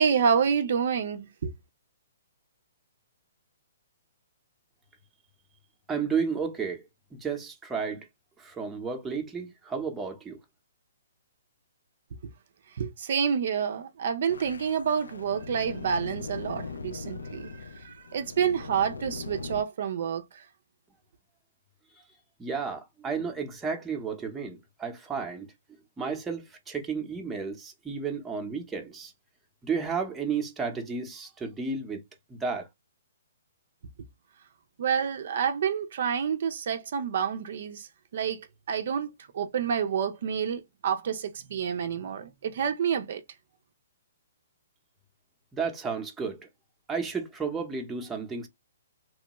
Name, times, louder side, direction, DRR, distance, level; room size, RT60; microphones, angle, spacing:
voice 1, 0.0-1.5 12.8-20.4 34.8-43.2, right 7 dB, 60° right, 0.5 m, -28 dB
voice 2, 5.9-8.1 8.4-10.4 22.4-25.5 26.0-29.1 29.6-32.0 32.3-32.7 45.5-46.5 46.9-48.5, right 5 dB, 10° right, 0.7 m, -32 dB
sound 1, 14.3-19.6, left 4 dB, 90° left, 0.3 m, -40 dB
3.0 x 2.2 x 2.9 m
hypercardioid pair, 140°, 0 cm